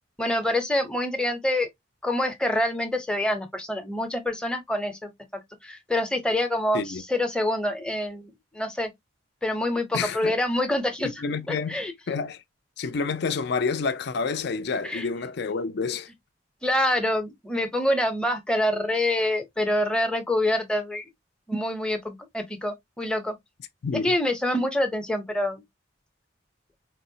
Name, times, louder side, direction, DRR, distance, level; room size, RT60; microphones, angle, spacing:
voice 1, 0.2-1.7 2.0-5.1 5.6-8.9 9.4-11.1 11.5-11.9 14.8-15.0 16.6-21.0 21.5-23.4 24.0-25.6, left 1 dB, 5° left, 0.6 m, -26 dB
voice 2, 9.9-10.4 11.0-11.8 12.1-12.4 12.8-16.1 23.8-24.1, left 4 dB, 60° left, 0.4 m, -28 dB
4.6 x 2.0 x 2.7 m
head